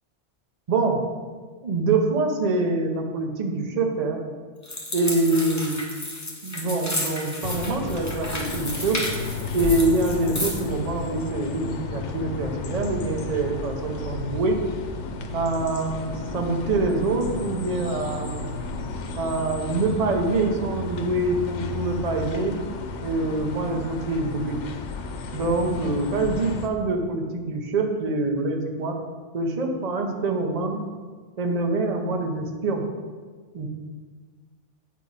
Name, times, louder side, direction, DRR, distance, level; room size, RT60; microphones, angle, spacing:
voice 1, 0.7-1.0 1.6-4.2 4.9-5.8 6.4-9.0 9.5-14.6 15.3-18.5 19.2-22.6 23.0-24.6 25.3-29.0 29.3-30.9 31.4-32.8 33.5-33.7, right 2 dB, 40° right, 3 dB, 0.8 m, -25 dB
sound 1, 4.6-10.7, left 1 dB, 15° left, 1.0 m, -32 dB
sound 2, 7.4-26.7, left 3 dB, 75° left, 1.0 m, -33 dB
8.6 x 4.7 x 4.0 m, 1.5 s
omnidirectional pair, 1.2 m